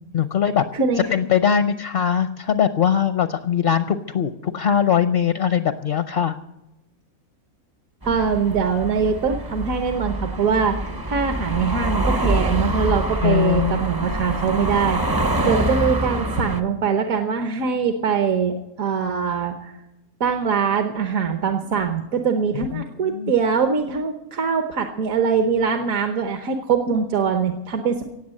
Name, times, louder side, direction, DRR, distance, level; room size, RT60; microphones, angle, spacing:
voice 1, 0.1-0.6 1.1-6.4 13.2-13.8 22.7-23.3, left 8 dB, 55° left, 10 dB, 0.6 m, -21 dB
voice 2, 0.7-1.1 8.0-19.7 20.2-28.0, right 6 dB, 70° right, 5 dB, 1.4 m, -22 dB
sound 1, 8.0-16.6, right 1 dB, 25° right, 0.5 m, -25 dB
18.0 x 7.7 x 7.6 m, 0.92 s
omnidirectional pair, 1.5 m